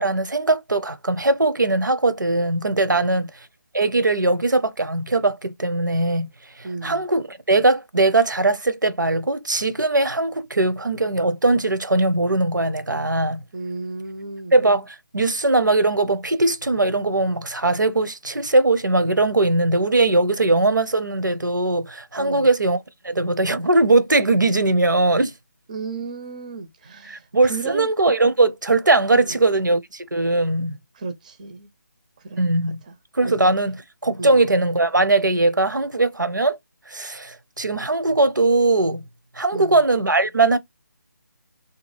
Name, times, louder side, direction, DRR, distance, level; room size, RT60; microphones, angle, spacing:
voice 1, 0.0-3.3 3.7-6.3 6.6-13.4 14.5-25.3 27.1-30.8 32.4-32.8 33.1-36.6 36.9-39.0 39.4-40.6, right 2 dB, 85° right, 0.6 m, -20 dB
voice 2, 2.9-3.3 6.6-7.0 13.5-14.6 22.2-22.5 25.7-27.9 29.2-29.4 30.9-31.7 32.3-32.4 32.9-33.0 33.2-33.4 34.2-34.4 39.5-39.8, right 4 dB, 25° right, 0.4 m, -33 dB
2.7 x 2.3 x 3.1 m
figure-of-eight pair, 155°, 10 cm